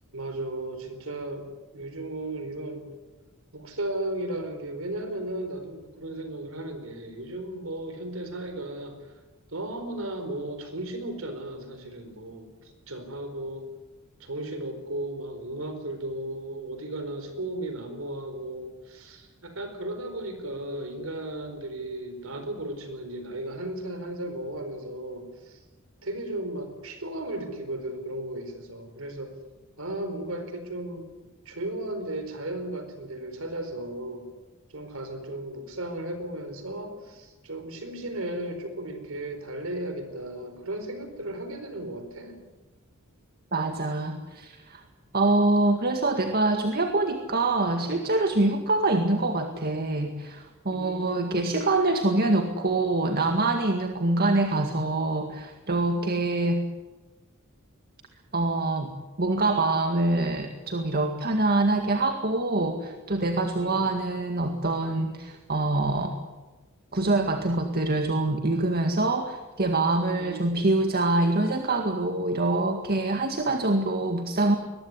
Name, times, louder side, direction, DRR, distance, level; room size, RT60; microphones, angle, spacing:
voice 1, 0.1-1.5 1.7-2.9 3.5-9.1 9.5-13.7 14.2-25.6 26.0-29.3 29.8-31.1 31.4-34.2 34.7-42.4 50.7-51.4 63.5-63.8 70.2-70.6, right 1 dB, 70° right, 7 dB, 4.4 m, -35 dB
voice 2, 43.5-44.8 45.1-56.6 58.3-58.9 59.2-66.1 66.9-74.6, right 2 dB, 45° right, 5 dB, 2.0 m, -25 dB
22.0 x 20.5 x 9.7 m, 1.2 s
head